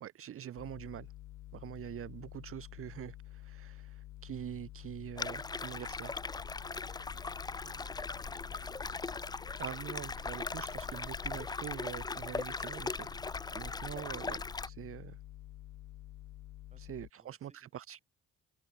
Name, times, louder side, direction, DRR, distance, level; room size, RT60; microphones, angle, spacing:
voice 1, 0.0-1.1 1.5-6.2 9.6-13.1 13.5-15.2 16.8-18.0, right 11 dB, 45° right, 0.7 m, -45 dB
sound 1, 0.6-17.1, left 15 dB, 85° left, 2.6 m, -50 dB
sound 2, 5.2-14.7, left 4 dB, 15° left, 0.4 m, -39 dB
voice 2, 7.1-8.8 16.7-17.7, right 3 dB, 20° right, 7.8 m, -66 dB
cardioid pair, 90°, 30 cm